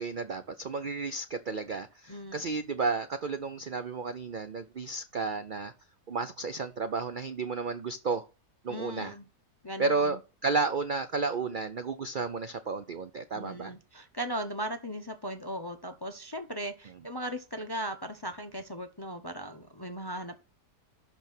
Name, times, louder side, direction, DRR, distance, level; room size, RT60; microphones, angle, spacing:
voice 1, 0.0-5.7 6.1-8.3 8.6-9.1 9.8-13.7, right 4 dB, 70° right, 0.4 m, -32 dB
voice 2, 2.1-2.5 8.7-9.3 9.6-10.2 13.3-20.4, equal, 25° left, 0.5 m, -38 dB
12.0 x 4.3 x 6.0 m
omnidirectional pair, 1.7 m